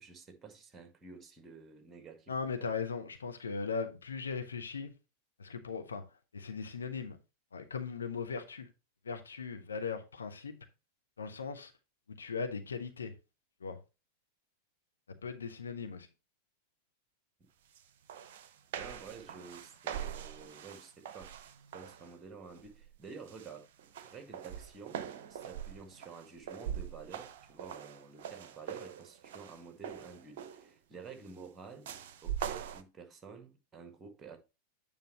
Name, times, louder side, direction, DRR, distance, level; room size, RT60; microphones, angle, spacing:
voice 1, 0.0-2.3 18.8-21.3 21.7-23.7 24.0-31.9 32.2-34.4, right 5 dB, 20° right, 1.7 m, -50 dB
voice 2, 2.3-4.9 5.4-6.0 6.3-7.2 7.5-8.7 9.0-10.6 11.2-11.7 12.2-13.1 13.6-13.8 15.1-16.1, left 5 dB, 70° left, 1.0 m, -38 dB
sound 1, 17.7-17.8 18.1-22.1 22.6-22.9 23.3-30.7 31.8-32.8, right 9 dB, 50° right, 0.7 m, -43 dB
9.3 x 5.2 x 3.1 m
figure-of-eight pair, 90°, 0 cm